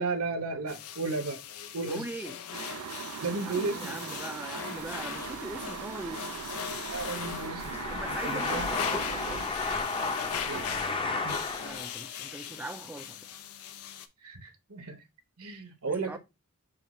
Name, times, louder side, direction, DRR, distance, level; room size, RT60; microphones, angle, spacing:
voice 1, 0.0-1.4 1.7-2.0 3.2-3.9 6.9-7.9 8.2-8.7 10.5-10.6 11.2-11.4 14.2-15.0 15.4-16.2, right 3 dB, 70° right, 1.0 m, -34 dB
sound 1, 0.7-14.1, left 9 dB, 70° left, 0.5 m, -40 dB
voice 2, 1.9-2.4 3.4-6.3 7.9-9.5 11.6-13.2 15.8-16.2, right 2 dB, 10° right, 0.3 m, -41 dB
sound 2, 2.5-9.5, right 8 dB, 85° right, 0.4 m, -40 dB
sound 3, 4.8-11.9, left 3 dB, 25° left, 0.7 m, -34 dB
5.1 x 2.4 x 4.3 m
head